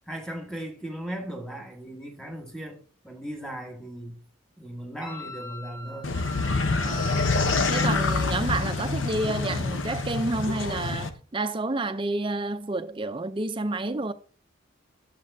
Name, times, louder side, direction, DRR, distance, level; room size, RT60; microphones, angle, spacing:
voice 1, 0.1-4.2 4.6-6.2, right 1 dB, 5° left, 1.7 m, -37 dB
Wind instrument woodwind instrument, 5.0-8.2, left 2 dB, 20° left, 0.9 m, -39 dB
sound 1, 6.0-11.1, left 3 dB, 65° left, 0.9 m, -26 dB
voice 2, 6.8-7.4 7.7-14.1, right 2 dB, 25° right, 0.5 m, -29 dB
10.5 x 7.5 x 2.7 m
head